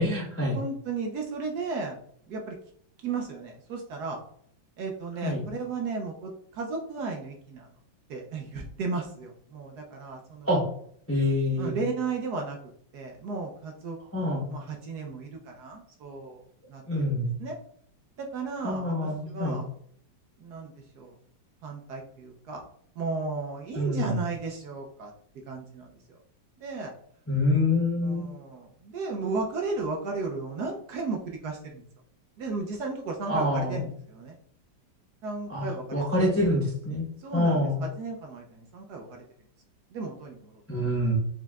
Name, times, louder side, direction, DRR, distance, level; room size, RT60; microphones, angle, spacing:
voice 1, 0.0-0.6 5.2-5.4 10.5-10.6 11.1-11.8 14.1-14.5 16.9-17.3 18.6-19.6 23.7-24.2 27.3-28.2 33.3-33.9 35.5-37.0 37.3-37.8 40.7-41.2, left 1 dB, 15° left, -3 dB, 0.4 m, -26 dB
voice 2, 0.5-2.0 2.3-2.6 3.0-4.2 4.8-7.7 8.1-10.5 11.6-12.6 12.9-16.4 16.7-16.8 17.4-17.6 18.2-19.7 20.4-21.1 21.6-22.6 23.0-25.1 25.5-26.2 26.6-26.9 27.6-27.7 28.0-31.8 32.4-34.4 35.2-36.3 37.2-39.2 39.9-40.6, right 4 dB, 65° right, 1 dB, 1.1 m, -35 dB
4.8 x 4.4 x 2.3 m, 0.64 s
omnidirectional pair, 2.1 m